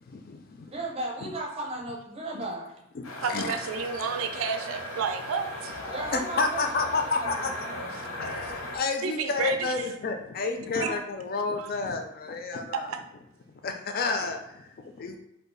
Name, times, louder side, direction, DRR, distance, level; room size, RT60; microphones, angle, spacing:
voice 1, 0.1-0.7 1.2-1.3 2.3-2.4 2.9-3.6 6.1-7.7 8.2-12.9 13.6-15.2, left 4 dB, 45° left, 5 dB, 0.3 m, -30 dB
voice 2, 0.7-2.7 5.9-6.7 7.1-8.0 10.7-11.0, right 2 dB, 30° right, -1 dB, 0.6 m, -36 dB
sound 1, 3.0-8.8, left 1 dB, 85° left, 0.7 m, -37 dB
voice 3, 3.2-5.8 9.0-9.7 10.8-10.9 11.6-11.7 12.9-13.0, right 6 dB, 80° right, 7 dB, 0.4 m, -31 dB
2.7 x 2.3 x 3.9 m, 0.83 s
head